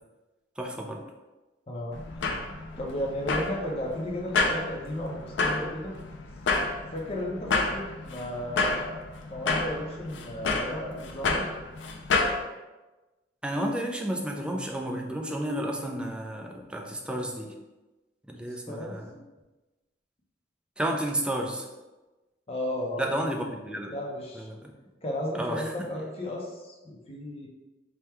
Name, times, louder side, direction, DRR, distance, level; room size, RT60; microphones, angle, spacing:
voice 1, 0.6-1.0 13.4-17.6 18.3-19.2 20.8-21.7 23.0-23.9 24.4-24.7 25.3-25.7, right 1 dB, 5° right, 1 dB, 0.4 m, -31 dB
voice 2, 1.7-2.0 2.5-5.9 6.9-9.0 9.3-11.5 18.7-19.0 22.5-23.1 23.9-24.5 25.0-27.5, left 1 dB, 35° left, -1 dB, 0.7 m, -34 dB
sound 1, 1.9-12.4, left 3 dB, 85° left, 0.5 m, -30 dB
3.5 x 2.3 x 4.3 m, 1.1 s
head